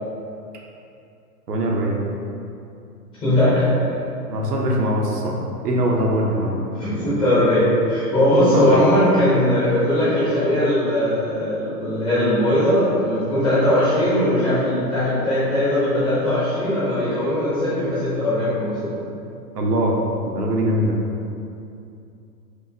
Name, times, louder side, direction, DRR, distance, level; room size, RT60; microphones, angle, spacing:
voice 1, 1.5-2.0 4.3-5.4 5.6-7.1 8.5-8.9 19.5-19.9 20.3-21.0, equal, 70° right, -1 dB, 0.8 m, -22 dB
voice 2, 3.2-3.9 6.8-18.9, left 1 dB, 10° left, -11 dB, 0.6 m, -19 dB
4.6 x 2.5 x 2.7 m, 2.6 s
figure-of-eight pair, 110°, 49 cm